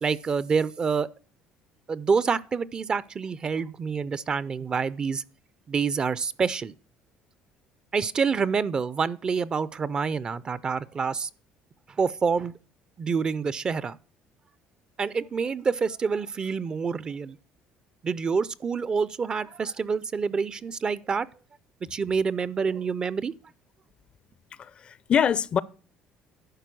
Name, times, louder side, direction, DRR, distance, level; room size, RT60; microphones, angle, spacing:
voice 1, 0.0-1.1 1.9-5.2 5.7-6.7 7.9-11.3 12.0-12.5 13.0-14.0 15.0-17.4 18.0-21.3 21.9-23.3, right 5 dB, 30° right, 0.4 m, -27 dB
voice 2, 24.6-25.6, left 8 dB, 40° left, 0.4 m, -24 dB
11.5 x 4.5 x 6.0 m
cardioid pair, 110°, 3 cm